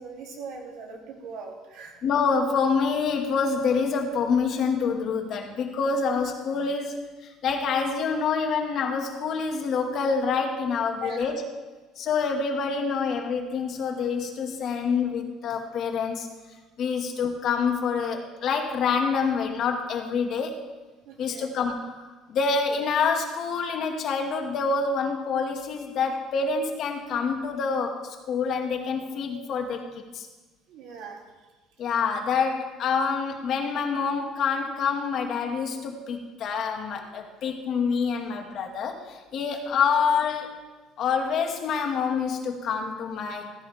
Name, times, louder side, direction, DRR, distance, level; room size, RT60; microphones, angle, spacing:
voice 1, 0.0-2.0 11.0-11.4 21.0-21.5 30.7-31.3 32.3-32.4, right 4 dB, 75° right, 0 dB, 3.2 m, -40 dB
voice 2, 2.0-11.4 12.0-16.3 16.8-20.6 21.2-30.3 31.8-40.6 41.0-43.5, left 5 dB, 55° left, 3 dB, 2.0 m, -27 dB
16.0 x 15.5 x 3.6 m, 1.2 s
cardioid pair, 130°, 0 cm